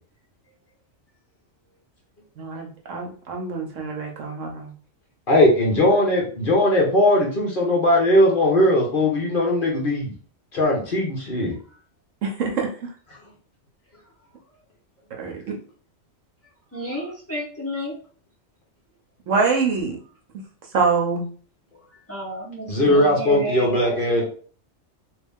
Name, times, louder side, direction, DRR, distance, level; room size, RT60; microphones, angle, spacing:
voice 1, 2.4-4.7 12.2-12.9 15.1-15.6 19.3-20.0 20.7-21.3 22.8-22.9, right 4 dB, 75° right, 2 dB, 1.1 m, -25 dB
voice 2, 5.3-10.1 10.5-11.5 22.7-24.2, left 1 dB, 45° left, -2 dB, 1.1 m, -19 dB
voice 3, 16.7-18.0 21.9-24.2, equal, 10° left, -5 dB, 0.9 m, -32 dB
3.0 x 2.7 x 3.5 m, 0.43 s
omnidirectional pair, 1.3 m